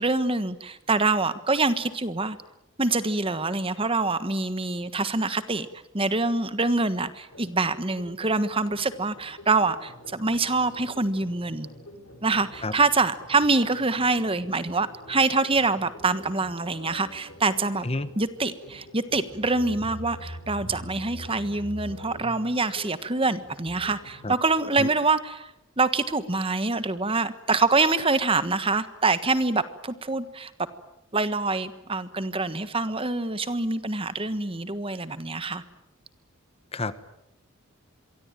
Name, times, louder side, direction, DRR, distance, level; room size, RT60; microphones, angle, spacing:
voice 1, 0.0-2.4 2.8-5.7 5.9-11.7 12.2-17.9 18.2-30.5 31.1-35.6, right 3 dB, 25° right, 12 dB, 1.4 m, -25 dB
sound 1, 7.3-24.8, equal, 65° left, 7.5 m, -45 dB
voice 2, 36.7-37.1, left 2 dB, 25° left, 13 dB, 1.1 m, -30 dB
27.0 x 23.5 x 9.1 m, 0.86 s
head